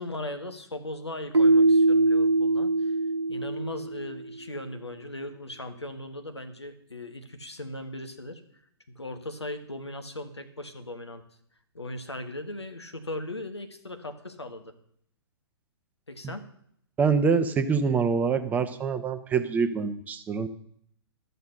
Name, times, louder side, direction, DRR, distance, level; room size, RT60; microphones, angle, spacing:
voice 1, 0.0-3.0 3.3-8.4 8.9-11.2 11.7-14.7 16.1-16.5, left 1 dB, 85° left, 8 dB, 1.4 m, -38 dB
Keyboard (musical), 1.3-4.2, right 2 dB, 90° right, 0.4 m, -22 dB
voice 2, 17.0-20.5, right 5 dB, 10° right, 10 dB, 0.7 m, -25 dB
12.5 x 6.8 x 6.6 m, 0.68 s
figure-of-eight pair, 120°, 14 cm